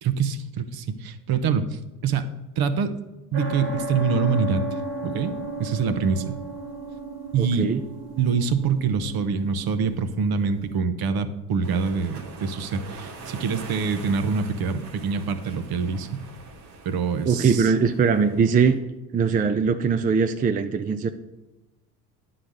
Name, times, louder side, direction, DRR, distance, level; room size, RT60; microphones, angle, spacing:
voice 1, 0.0-2.3 2.6-2.9 3.3-4.6 5.0-5.3 5.6-6.4 7.3-7.7 8.2-16.2 16.8-17.7, right 5 dB, 50° right, 10 dB, 0.9 m, -25 dB
sound 1, 3.3-10.8, right 1 dB, 65° right, 2.1 m, -34 dB
voice 2, 7.4-7.8 17.2-18.8 19.1-21.1, right 5 dB, 20° right, 8 dB, 0.4 m, -21 dB
sound 2, 11.6-18.8, right 3 dB, 85° right, 1.5 m, -43 dB
9.8 x 4.0 x 6.3 m, 1.1 s
hypercardioid pair, 65°, 47 cm